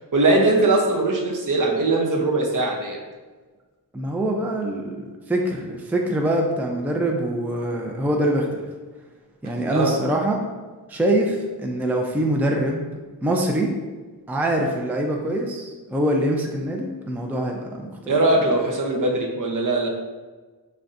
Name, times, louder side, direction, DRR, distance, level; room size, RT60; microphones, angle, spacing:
voice 1, 0.1-3.0 9.7-9.9 18.1-19.9, right 2 dB, 55° right, 1 dB, 0.8 m, -20 dB
voice 2, 3.9-8.6 9.4-10.4 10.9-12.9 13.2-13.7 14.3-18.2, right 1 dB, 5° right, 1 dB, 0.4 m, -24 dB
5.3 x 3.4 x 2.5 m, 1.3 s
wide cardioid pair, 110°, 39 cm